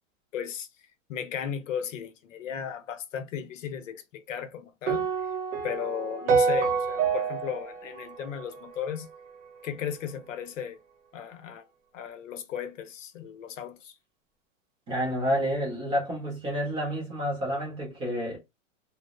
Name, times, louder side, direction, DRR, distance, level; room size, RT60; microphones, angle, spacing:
voice 1, 0.3-0.7 1.1-5.1 5.6-9.1 9.6-10.8 11.1-11.6 11.9-14.0, left 8 dB, 75° left, 0.7 m, -35 dB
sound 1, 4.9-9.2, right 5 dB, 70° right, 0.8 m, -28 dB
voice 2, 14.9-18.4, equal, 15° right, 0.5 m, -29 dB
2.6 x 2.0 x 2.3 m
hypercardioid pair, 160°, 38 cm